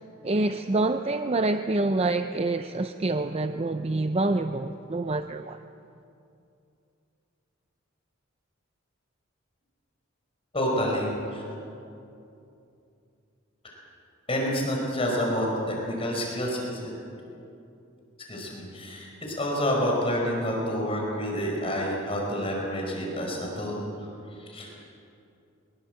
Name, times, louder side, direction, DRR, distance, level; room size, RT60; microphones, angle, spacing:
voice 1, 0.2-5.6, right 2 dB, 30° right, 8 dB, 0.6 m, -26 dB
voice 2, 10.5-11.4 14.3-16.9 18.3-23.8 24.4-24.7, equal, 30° left, -1 dB, 5.1 m, -28 dB
23.5 x 22.0 x 8.0 m, 2.7 s
head